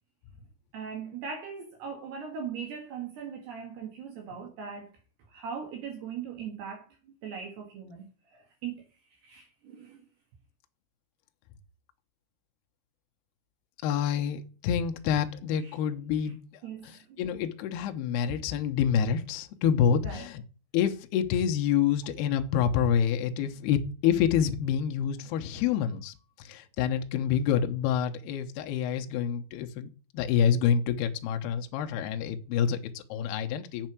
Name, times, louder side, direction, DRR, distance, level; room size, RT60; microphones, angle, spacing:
voice 1, 0.7-4.9 5.3-8.8 9.2-10.0 15.6-15.7 16.6-17.2 20.0-20.3, right 6 dB, 65° right, 3.2 m, -40 dB
voice 2, 13.8-20.4 20.7-33.9, left 8 dB, 80° left, 2.4 m, -27 dB
8.0 x 6.5 x 6.0 m
omnidirectional pair, 5.8 m